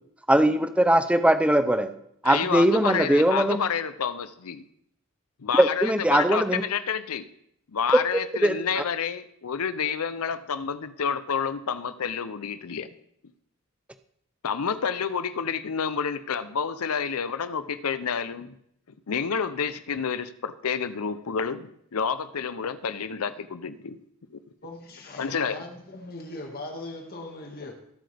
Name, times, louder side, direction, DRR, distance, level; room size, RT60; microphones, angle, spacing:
voice 1, 0.3-1.9 2.2-3.6 5.6-6.6 8.4-8.8, right 1 dB, 5° right, 10 dB, 0.5 m, -21 dB
voice 2, 2.2-4.6 5.4-7.3 7.7-12.9 14.4-18.5 19.1-24.0 24.3-24.4 25.2-25.6, left 6 dB, 80° left, 13 dB, 0.6 m, -29 dB
voice 3, 24.6-27.7, left 2 dB, 45° left, 2 dB, 1.9 m, -39 dB
19.5 x 7.8 x 3.4 m, 0.74 s
head